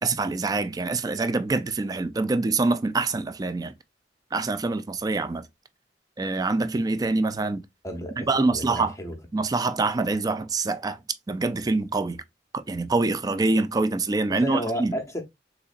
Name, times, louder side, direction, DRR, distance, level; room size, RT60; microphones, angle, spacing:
voice 1, 0.0-3.7 4.3-5.5 6.2-7.6 8.2-8.9 9.3-11.0 11.3-12.2 12.5-14.9, right 3 dB, 20° right, 0.3 m, -25 dB
voice 2, 7.8-9.2 14.3-15.2, equal, 15° left, 0.7 m, -32 dB
3.9 x 3.0 x 2.4 m
head